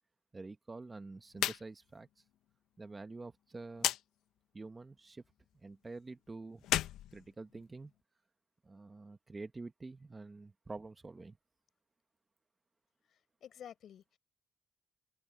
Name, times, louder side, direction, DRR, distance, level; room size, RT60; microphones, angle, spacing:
voice 1, 0.3-2.1 2.8-4.0 4.5-5.2 5.6-6.6 7.1-7.9 8.6-11.4, right 3 dB, 25° right, 1.2 m, -47 dB
sound 1, 1.3-1.6 1.9-2.0 3.8-4.0 6.6-7.9, left 13 dB, 85° left, 0.7 m, -34 dB
voice 2, 13.1-14.2, left 9 dB, 65° left, 6.0 m, -52 dB
cardioid pair, 90°, 0 cm